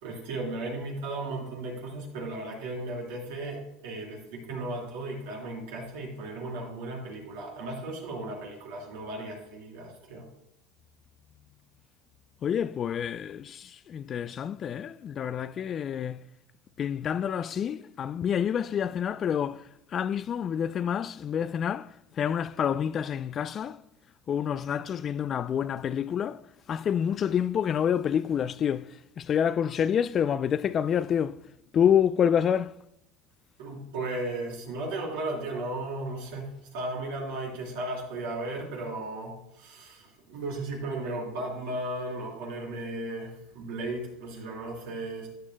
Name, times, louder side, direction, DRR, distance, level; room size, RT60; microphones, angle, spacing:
voice 1, 0.0-10.3 33.6-45.3, right 2 dB, 80° right, 3.5 m, -35 dB
voice 2, 12.4-16.3 16.8-19.6 19.9-21.9 22.2-23.8 24.3-26.4 26.7-31.4 31.7-32.7, left 8 dB, 35° left, 0.3 m, -28 dB
13.0 x 9.2 x 2.2 m
supercardioid pair, 120°, 0 cm